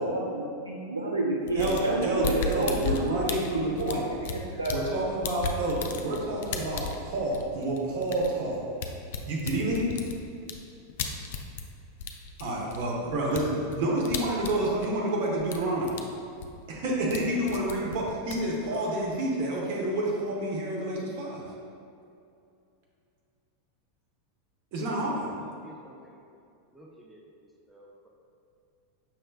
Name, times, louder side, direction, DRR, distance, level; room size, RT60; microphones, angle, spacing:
voice 1, 0.0-2.7 3.0-3.2 3.5-4.9, right 2 dB, 80° right, -3 dB, 0.3 m, -30 dB
sound 1, 1.5-4.9 5.2-11.7 12.0-15.1 15.4-16.0 16.3-17.2 17.5-19.2, left 5 dB, 55° left, 0.3 m, -35 dB
voice 2, 1.5-4.0 4.7-8.6 9.3-9.9 12.4-16.0 16.7-21.4 24.7-25.3, right 1 dB, 50° right, -3 dB, 0.8 m, -29 dB
voice 3, 18.4-19.1 24.9-26.2 26.7-28.1, equal, ahead, -3 dB, 0.6 m, -51 dB
5.6 x 3.2 x 2.2 m, 2.5 s
figure-of-eight pair, 85°, 0 cm